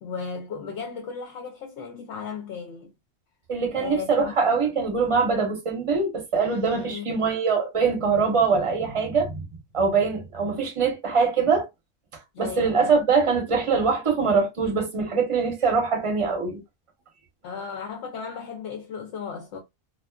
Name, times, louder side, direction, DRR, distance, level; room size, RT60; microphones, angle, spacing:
voice 1, 0.0-2.9 3.7-4.6 6.7-7.1 12.3-13.0 17.4-19.6, left 6 dB, 70° left, 0.8 m, -35 dB
voice 2, 3.5-9.4 9.7-11.7 12.4-16.6, right 5 dB, 30° right, 0.8 m, -23 dB
2.4 x 2.3 x 2.2 m
omnidirectional pair, 1.3 m